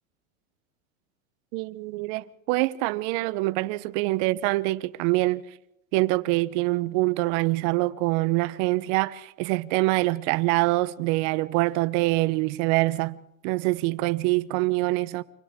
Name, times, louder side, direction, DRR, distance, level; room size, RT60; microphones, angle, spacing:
voice 1, 1.5-5.4 5.9-13.2 13.4-15.2, right 21 dB, 55° right, 1.0 m, -25 dB
29.0 x 25.0 x 3.7 m
hypercardioid pair, 105°, 41 cm